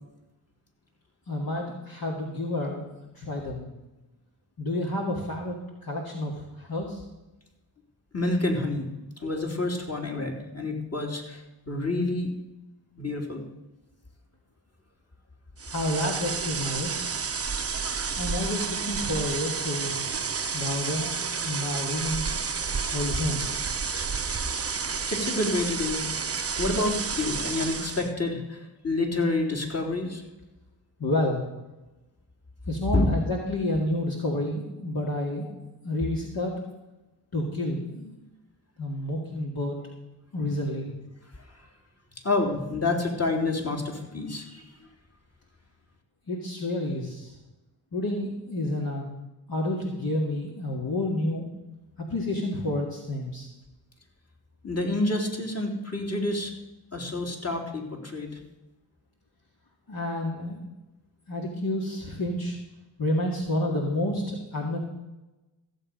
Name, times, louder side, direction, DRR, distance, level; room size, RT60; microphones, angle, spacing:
voice 1, 1.3-2.9 3.1-3.7 4.6-7.0 15.7-17.1 18.2-20.0 20.5-21.1 21.4-22.3 22.7-23.6 31.0-31.4 32.7-35.5 35.8-36.5 37.3-38.1 38.8-39.8 40.3-40.9 46.3-47.4 47.9-49.1 49.5-51.5 52.1-53.5 59.9-60.6 61.3-62.6 63.0-64.8, left 1 dB, 50° left, -2 dB, 2.2 m, -29 dB
voice 2, 8.1-8.9 9.2-12.3 13.0-13.4 21.0-21.1 23.3-23.4 25.1-26.0 26.6-30.2 32.9-33.1 42.2-44.6 54.6-56.5 56.9-58.4, left 2 dB, 35° left, 1 dB, 3.4 m, -28 dB
sound 1, 15.6-28.1, right 5 dB, 30° right, 0.8 m, -30 dB
15.5 x 7.9 x 5.3 m, 1.0 s
cardioid pair, 50°, 45 cm